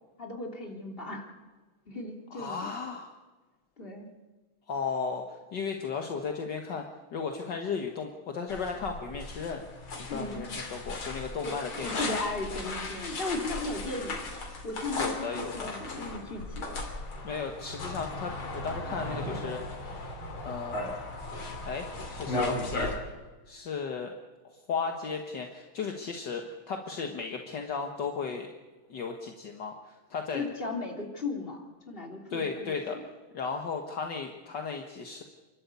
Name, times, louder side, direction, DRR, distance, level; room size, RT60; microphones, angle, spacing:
voice 1, 0.2-1.3 1.9-2.7 3.8-4.1 10.1-10.5 11.4-14.3 14.6-16.8 30.3-31.6 31.9-33.0, left 2 dB, 25° left, 1 dB, 3.3 m, -36 dB
voice 2, 2.3-3.1 4.7-6.9 7.1-9.6 10.1-12.2 15.0-15.7 17.2-19.6 20.4-21.0 21.7-22.9 23.5-24.1 24.7-28.5 28.9-30.4 32.3-33.0 33.3-35.2, left 5 dB, 60° left, 3 dB, 2.0 m, -35 dB
sound 1, 8.5-23.0, left 2 dB, 80° left, 3.9 m, -36 dB
29.0 x 12.0 x 8.3 m, 1.3 s
omnidirectional pair, 2.2 m